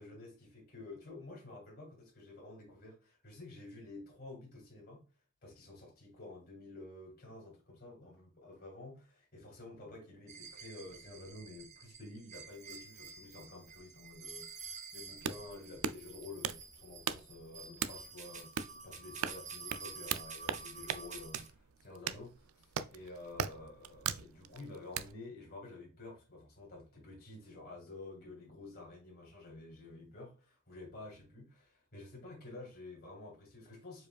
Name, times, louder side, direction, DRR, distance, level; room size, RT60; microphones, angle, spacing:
voice 1, 0.0-5.1 5.4-34.1, left 2 dB, 45° left, 2.0 m, -50 dB
sound 1, 10.3-21.5, right 5 dB, 35° right, 0.8 m, -49 dB
sound 2, 15.0-25.1, right 8 dB, 75° right, 0.4 m, -40 dB
4.9 x 4.6 x 2.4 m
head